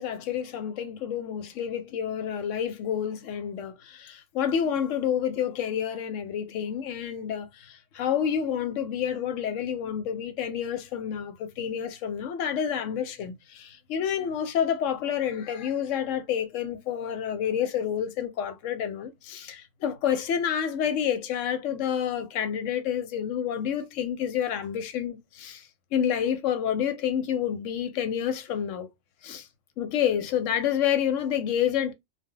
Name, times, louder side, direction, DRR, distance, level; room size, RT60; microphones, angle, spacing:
voice 1, 0.0-25.6 25.9-28.9 29.2-29.5 29.8-31.9, left 9 dB, 85° left, 0.9 m, -29 dB
2.1 x 2.1 x 3.6 m
omnidirectional pair, 1.3 m